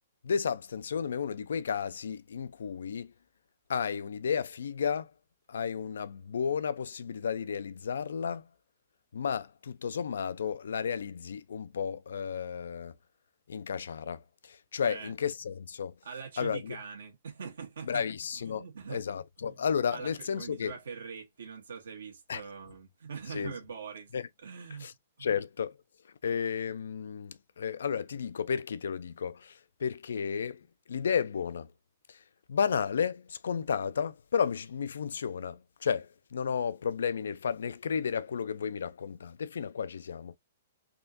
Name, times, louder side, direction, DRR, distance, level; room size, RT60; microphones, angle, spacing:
voice 1, 0.2-3.1 3.7-5.1 5.5-8.5 9.1-12.9 13.5-15.9 16.4-16.8 17.9-20.7 22.3-22.4 23.3-23.5 24.1-24.3 24.8-24.9 25.2-25.8 26.2-31.7 32.1-32.2 32.5-40.4, left 7 dB, 85° left, 0.4 m, -33 dB
voice 2, 14.8-15.1 16.0-18.0 18.3-19.0 19.4-19.5 19.9-24.1 24.4-25.3, right 6 dB, 90° right, 1.2 m, -43 dB
3.6 x 2.5 x 2.5 m
hypercardioid pair, 155°, 0 cm